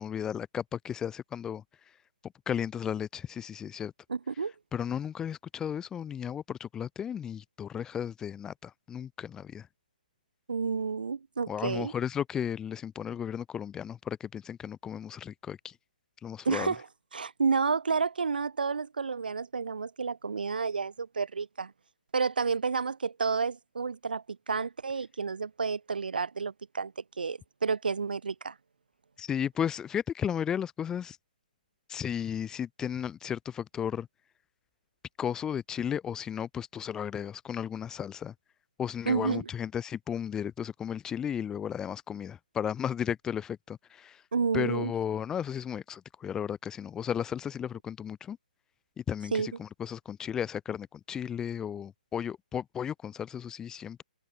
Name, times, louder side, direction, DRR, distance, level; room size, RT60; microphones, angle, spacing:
voice 1, 0.0-1.6 2.5-3.9 4.7-9.7 11.5-15.7 16.2-16.7 29.2-31.2 31.9-34.1 35.2-38.3 38.8-44.2 44.5-48.4 49.1-54.0, left 8 dB, 15° left, 2.8 m, -34 dB
voice 2, 4.1-4.5 10.5-11.9 16.5-16.9 17.1-21.7 22.1-28.6 39.1-39.5 44.3-44.9 49.3-49.5, right 5 dB, 80° right, 3.5 m, -30 dB
open air
hypercardioid pair, 150°, 5 cm